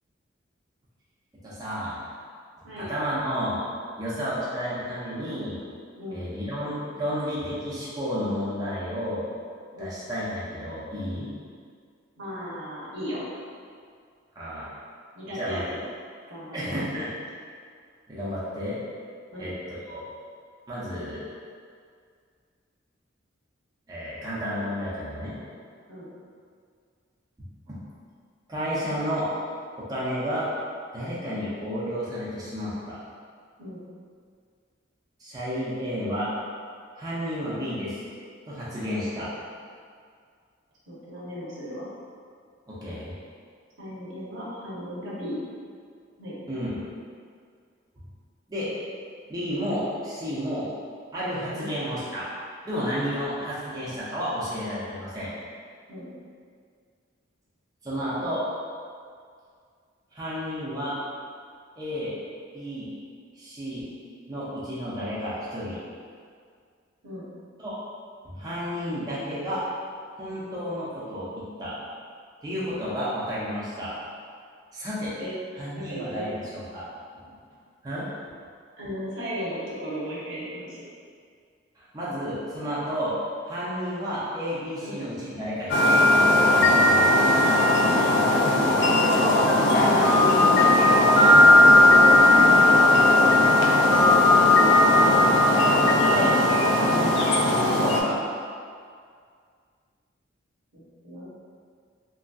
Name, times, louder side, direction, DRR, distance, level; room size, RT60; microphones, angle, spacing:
voice 1, 1.4-2.0 2.8-3.6 4.0-5.6 6.1-9.2 9.8-11.3 14.4-14.7 15.3-15.6 16.5-17.1 18.1-18.8 19.4-19.5 19.9-20.0 20.7-21.3 23.9-25.4 27.7-27.8 28.5-29.3 29.8-30.5 30.9-33.0 35.2-36.3 37.0-38.0 38.5-39.3 42.7-43.1 46.5-46.7 48.5-48.7 49.3-50.7 51.1-52.3 52.6-55.3 57.8-58.4 60.1-60.9 61.8-62.1 62.5-62.9 63.4-63.9 64.3-65.8 67.6-67.7 68.2-69.6 70.2-71.8 72.4-73.9 74.7-75.1 75.6-76.9 77.1-77.3 77.8-78.1 81.8-83.1 83.4-87.4 88.8-89.5 89.8-92.2 92.5-92.6 95.8-96.3 96.7-98.2, equal, 20° right, -9 dB, 0.5 m, -31 dB
voice 2, 5.9-6.2 9.7-9.9 12.2-13.2 15.1-15.8 16.3-16.8 19.3-19.5 25.9-26.1 33.6-33.8 40.9-41.9 43.8-45.4 46.2-46.4 51.5-51.7 55.9-56.1 67.0-67.2 75.2-75.3 75.7-76.3 78.8-80.8 84.8-85.0 87.4-88.1 95.5-95.6 100.7-101.2, equal, 75° right, -7 dB, 0.8 m, -36 dB
sound 1, 85.7-98.0, left 1 dB, 60° left, 0.3 m, -17 dB
2.9 x 2.6 x 2.3 m, 2.1 s
head